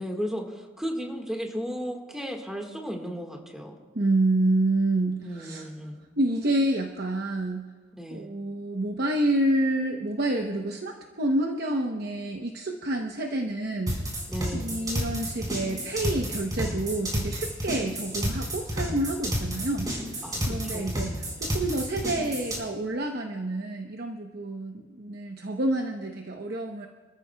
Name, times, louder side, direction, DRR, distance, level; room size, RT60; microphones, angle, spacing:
voice 1, 0.0-3.7 5.2-6.0 7.9-8.3 14.3-14.8 20.2-21.1, equal, 5° right, 1 dB, 1.6 m, -35 dB
voice 2, 3.9-5.7 6.2-7.7 8.1-14.0 14.5-19.9 20.5-26.9, right 1 dB, 55° right, 3 dB, 0.9 m, -28 dB
sound 1, 13.9-22.6, equal, 20° right, 4.4 m, -30 dB
27.5 x 13.5 x 2.3 m, 1.4 s
head